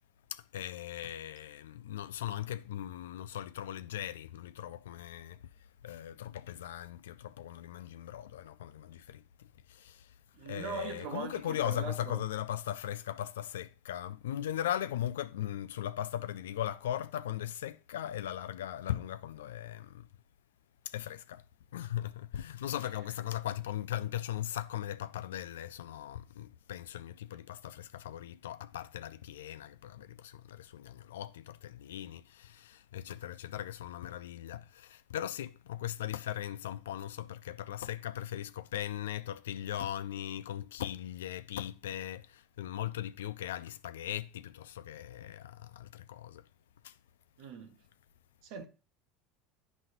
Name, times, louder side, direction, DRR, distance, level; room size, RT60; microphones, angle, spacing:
voice 1, 0.3-5.4 5.8-9.2 9.7-10.1 10.5-20.1 20.9-21.4 21.7-46.4 46.8-46.9, left 11 dB, 90° left, 0.4 m, -39 dB
voice 2, 10.4-12.2 47.4-47.8 48.4-48.6, right 5 dB, 65° right, 1.2 m, -41 dB
11.0 x 4.1 x 2.6 m
supercardioid pair, 95°, 0 cm